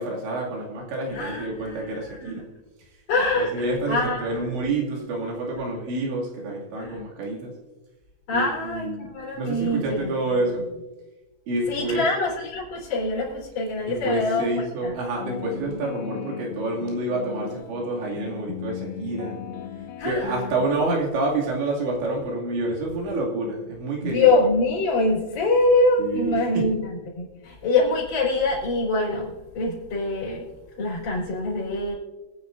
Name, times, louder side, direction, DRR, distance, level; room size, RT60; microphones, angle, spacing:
voice 1, 0.0-2.4 3.4-7.5 8.3-10.6 11.5-12.0 13.9-19.4 20.0-24.3 26.0-26.7, right 2 dB, 85° right, -3 dB, 4.9 m, -28 dB
voice 2, 1.1-2.4 3.1-4.4 6.8-7.0 8.3-8.9 9.1-10.1 11.7-14.4 14.8-14.9 20.0-20.3 24.0-30.4 30.8-31.9, left 2 dB, 45° left, -6 dB, 5.0 m, -24 dB
sound 1, 15.2-20.7, left 9 dB, 80° left, 2.2 m, -37 dB
25.5 x 9.5 x 2.6 m, 1.1 s
omnidirectional pair, 5.0 m